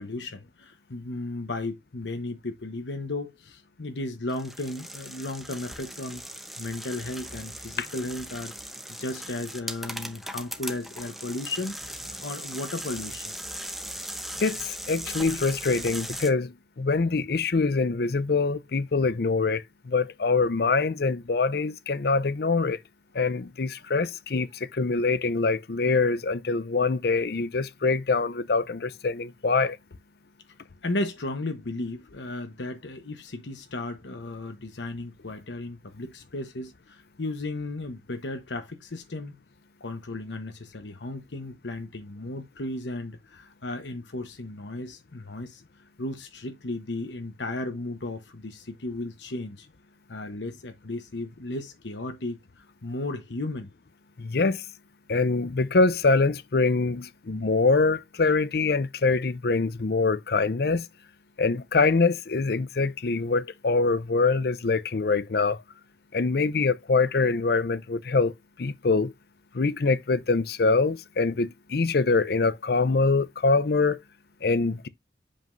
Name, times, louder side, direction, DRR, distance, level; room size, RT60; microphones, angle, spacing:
voice 1, 0.0-6.2 6.6-8.5 8.9-13.4 24.4-24.5 30.8-39.4 39.8-45.6 46.0-49.7 50.1-53.7, left 2 dB, 80° left, 1.0 m, -35 dB
sound 1, 4.3-16.3, right 1 dB, ahead, 0.8 m, -38 dB
voice 2, 14.4-22.8 23.1-29.8 54.2-54.6 55.1-60.9 61.4-65.6 66.1-68.3 68.6-69.1 69.5-74.0 74.4-74.9, left 3 dB, 60° left, 0.6 m, -24 dB
7.3 x 5.3 x 2.6 m
head